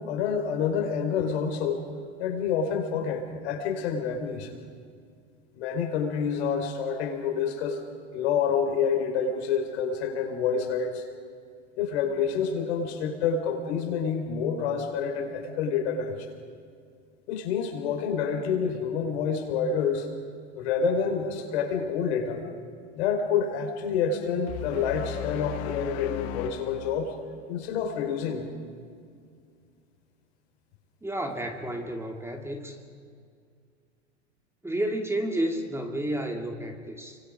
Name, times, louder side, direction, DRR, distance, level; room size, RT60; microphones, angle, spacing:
voice 1, 0.0-1.8 2.2-4.5 5.5-7.8 8.1-11.0 11.8-16.1 17.3-20.1 20.5-22.4 22.9-27.1 27.5-28.5, left 6 dB, 65° left, 3 dB, 5.1 m, -28 dB
sound 1, 24.5-27.8, left 14 dB, 45° left, 1.2 m, -37 dB
voice 2, 31.0-32.8 34.6-37.2, right 1 dB, 5° right, 3 dB, 2.5 m, -31 dB
29.5 x 24.5 x 5.2 m, 2.2 s
hypercardioid pair, 100°, 36 cm